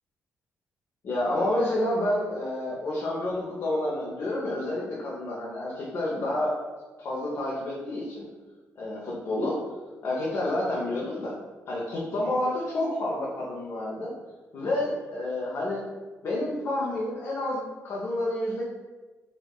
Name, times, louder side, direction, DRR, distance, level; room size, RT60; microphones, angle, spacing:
voice 1, 1.0-6.5 7.0-8.2 8.8-9.6 10.0-11.3 11.7-14.1 14.5-15.8 16.2-18.6, left 1 dB, 55° left, -5 dB, 0.5 m, -29 dB
2.7 x 2.1 x 2.2 m, 1.3 s
cardioid pair, 75°, 5 cm